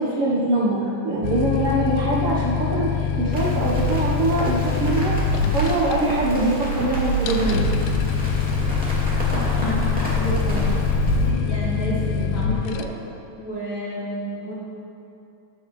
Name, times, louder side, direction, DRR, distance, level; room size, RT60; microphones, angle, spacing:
voice 1, 0.0-5.2 5.5-7.7, right 1 dB, 70° right, -5 dB, 1.4 m, -23 dB
sound 1, 1.2-12.8, left 8 dB, 80° left, 1.8 m, -25 dB
Crackle, 3.3-11.1, right 1 dB, 5° right, 1.5 m, -26 dB
voice 2, 9.3-10.7 11.1-12.9 13.4-14.5, right 1 dB, 35° left, -8 dB, 3.2 m, -30 dB
14.5 x 9.7 x 3.1 m, 2.6 s
omnidirectional pair, 4.1 m